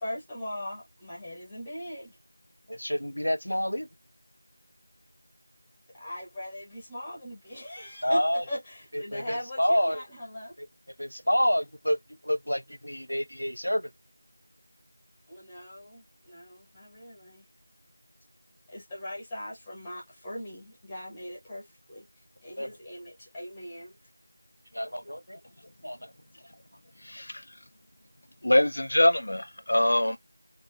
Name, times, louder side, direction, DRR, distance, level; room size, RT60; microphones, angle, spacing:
voice 1, 0.0-2.2 5.9-10.5 15.3-17.4 18.7-22.0 22.4-23.9, left 1 dB, 5° left, 0.8 m, -40 dB
voice 2, 2.7-3.9 8.0-8.4 8.9-10.0 10.6-10.7 11.0-12.0 12.2-13.9 22.6-22.7 24.7-25.4 25.8-26.0, equal, 80° left, 0.9 m, -28 dB
voice 3, 27.1-27.4 28.4-30.2, left 1 dB, 50° left, 0.7 m, -23 dB
3.8 x 2.5 x 2.8 m
figure-of-eight pair, 175°, 0 cm